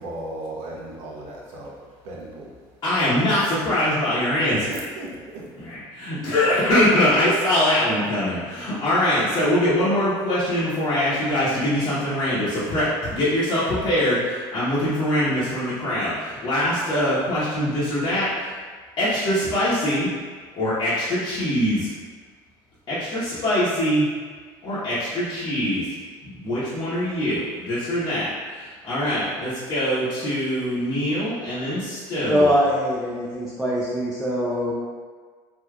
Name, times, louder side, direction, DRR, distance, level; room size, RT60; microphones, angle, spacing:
voice 1, 0.0-1.8 2.0-2.5 4.6-5.5, right 1 dB, 80° right, -3 dB, 0.7 m, -36 dB
voice 2, 2.8-4.7 5.6-18.5 19.0-20.1 20.5-21.9 22.9-24.1 24.6-25.9 26.2-32.5, left 1 dB, 40° left, -12 dB, 0.9 m, -23 dB
voice 3, 32.3-34.7, equal, 5° right, -7 dB, 0.5 m, -22 dB
3.3 x 2.8 x 2.3 m, 1.6 s
supercardioid pair, 100°, 11 cm